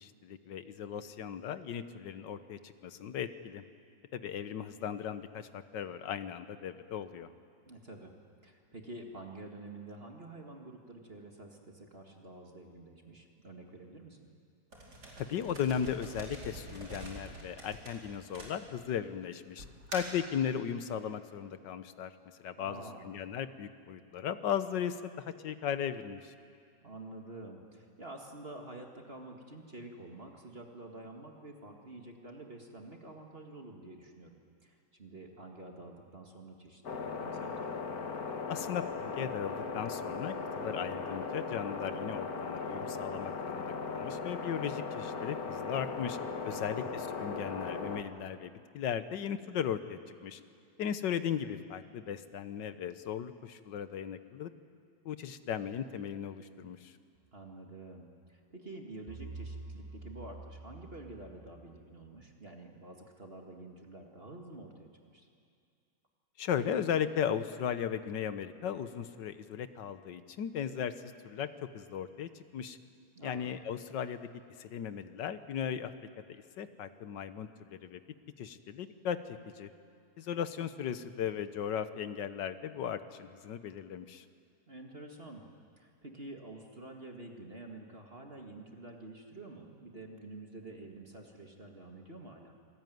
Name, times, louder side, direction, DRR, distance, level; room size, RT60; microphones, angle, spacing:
voice 1, 0.0-3.6 4.1-7.3 15.2-19.7 19.9-26.3 38.5-46.2 46.5-50.4 50.8-54.5 55.1-56.9 66.4-72.8 73.2-74.3 74.6-75.9 76.3-78.0 78.4-79.7 80.2-84.3, left 8 dB, 80° left, 12 dB, 1.7 m, -37 dB
voice 2, 7.7-8.1 8.4-14.3 22.6-23.2 26.8-37.6 46.5-46.9 57.3-65.3 73.2-73.5 84.7-85.5 85.8-92.6, right 2 dB, 35° right, 2 dB, 2.2 m, -48 dB
sound 1, 14.7-19.0 19.6-20.3, right 1 dB, 65° right, 5.0 m, -46 dB
sound 2, 36.8-48.0, left 4 dB, 55° left, 1.9 m, -38 dB
sound 3, 59.1-62.2, right 3 dB, 90° right, 0.3 m, -47 dB
27.0 x 19.5 x 9.4 m, 2.3 s
omnidirectional pair, 1.9 m